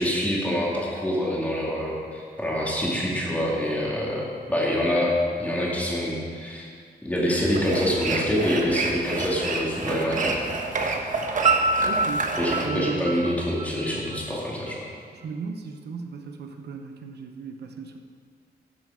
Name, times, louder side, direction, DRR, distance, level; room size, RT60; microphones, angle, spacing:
voice 1, 0.0-4.2 4.5-5.1 5.4-6.7 7.0-10.4 12.4-14.8, equal, 10° left, -5 dB, 2.4 m, -26 dB
sound 1, 7.3-12.7, right 3 dB, 50° right, 1.0 m, -29 dB
Piano, 11.4-14.3, right 3 dB, 35° right, 0.5 m, -26 dB
voice 2, 11.8-12.3 12.6-13.2 15.1-18.0, right 5 dB, 80° right, 5 dB, 0.9 m, -35 dB
13.0 x 7.2 x 5.0 m, 2.1 s
wide cardioid pair, 150°, 17 cm